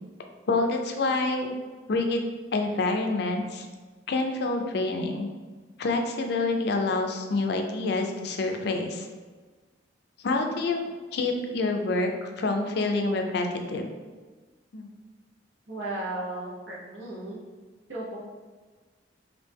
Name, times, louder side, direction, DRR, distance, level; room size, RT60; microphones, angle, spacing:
voice 1, 0.5-1.5 1.9-3.7 4.1-5.3 5.8-9.1 10.2-10.8 11.1-13.9 14.7-14.9, left 3 dB, 60° left, 4 dB, 0.4 m, -27 dB
voice 2, 15.7-17.4 17.9-18.2, right 2 dB, 75° right, -6 dB, 0.9 m, -35 dB
3.1 x 2.6 x 3.4 m, 1.4 s
head